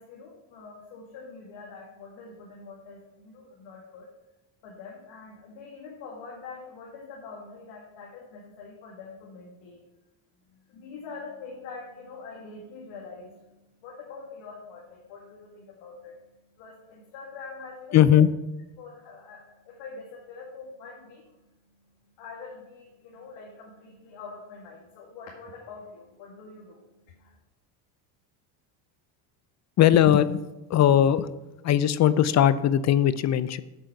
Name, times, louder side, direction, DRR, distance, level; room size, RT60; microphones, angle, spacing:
voice 1, 0.0-4.1 4.6-9.8 10.5-16.2 16.5-18.1 18.8-21.5 22.2-27.4, left 4 dB, 70° left, -3 dB, 2.3 m, -44 dB
voice 2, 17.9-18.3 29.8-30.4 30.7-31.3 31.6-33.6, left 10 dB, 35° left, 15 dB, 0.5 m, -19 dB
8.2 x 7.6 x 5.8 m, 1.0 s
cardioid pair, 115°, 48 cm